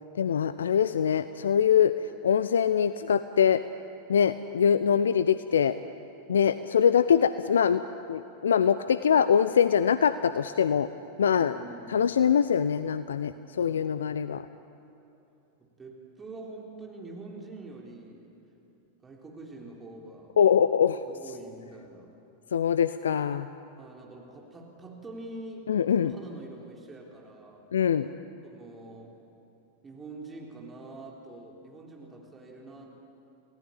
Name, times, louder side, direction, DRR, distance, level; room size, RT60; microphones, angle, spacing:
voice 1, 0.2-1.9 2.2-3.6 4.1-5.8 6.3-7.8 8.1-10.9 11.2-11.5 11.9-14.4 20.4-21.0 22.5-23.5 25.7-26.1 27.7-28.1, left 8 dB, 65° left, 14 dB, 0.6 m, -23 dB
voice 2, 11.4-12.4 13.6-14.0 15.8-18.3 19.0-20.4 21.1-22.1 23.8-25.7 26.0-27.7 28.4-29.1 29.8-32.9, right 2 dB, 15° right, -1 dB, 3.7 m, -45 dB
29.5 x 18.5 x 8.8 m, 2.8 s
figure-of-eight pair, 90°, 0 cm